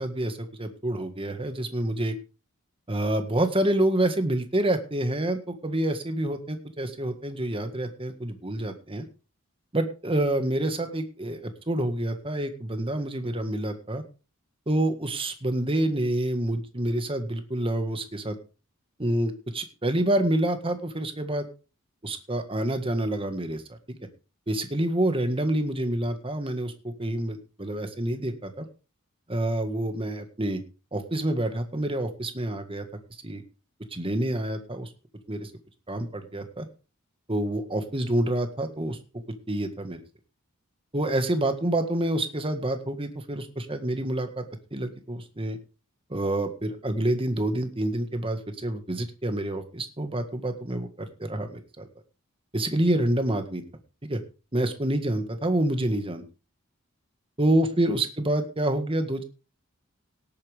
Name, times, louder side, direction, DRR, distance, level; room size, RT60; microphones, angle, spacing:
voice 1, 0.0-2.2 2.9-9.1 9.7-14.0 14.7-18.4 19.0-21.5 22.0-23.8 24.5-28.7 29.3-30.6 30.9-32.9 33.2-33.4 33.9-34.9 35.3-35.5 35.9-36.7 37.3-39.0 39.5-40.0 40.9-44.4 44.7-45.6 46.1-51.9 52.5-53.6 54.0-54.2 54.5-56.2 57.4-59.2, right 1 dB, 25° right, 7 dB, 1.7 m, -27 dB
18.0 x 8.7 x 3.5 m, 0.34 s
head